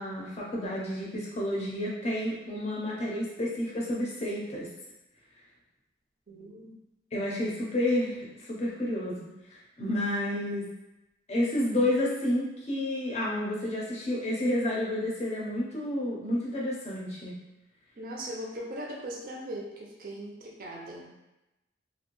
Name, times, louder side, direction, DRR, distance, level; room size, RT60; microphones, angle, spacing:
voice 1, 0.0-4.7 7.1-9.3 9.8-10.7 11.3-17.3, left 1 dB, 35° left, -4 dB, 0.6 m, -30 dB
voice 2, 6.3-6.8 18.0-21.1, right 1 dB, 45° right, -2 dB, 0.4 m, -39 dB
2.5 x 2.1 x 2.9 m, 0.95 s
head